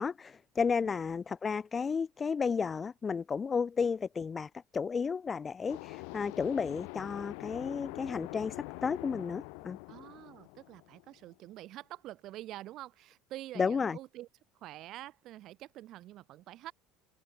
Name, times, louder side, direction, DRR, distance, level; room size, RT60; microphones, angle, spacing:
voice 1, 0.0-9.8 13.6-14.0, left 5 dB, 30° left, 3.4 m, -33 dB
sound 1, 5.7-11.3, left 40 dB or more, 75° left, 7.8 m, -45 dB
voice 2, 9.9-14.3 14.6-16.7, right 15 dB, 60° right, 5.0 m, -47 dB
hypercardioid pair, 85°, 0 cm